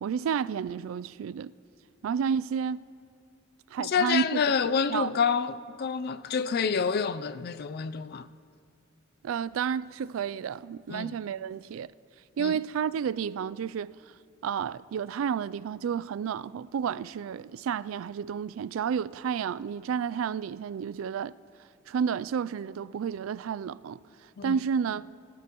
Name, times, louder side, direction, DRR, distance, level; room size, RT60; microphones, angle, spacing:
voice 1, 0.0-1.5 2.0-2.9 3.7-4.4 4.9-5.1 9.2-11.9 12.4-13.9 14.4-21.3 21.9-24.0 24.4-25.1, right 7 dB, 85° right, 0.3 m, -31 dB
voice 2, 3.8-8.3 10.9-11.1 12.4-12.6 24.4-24.6, left 6 dB, 50° left, 0.4 m, -28 dB
29.0 x 12.5 x 3.0 m
head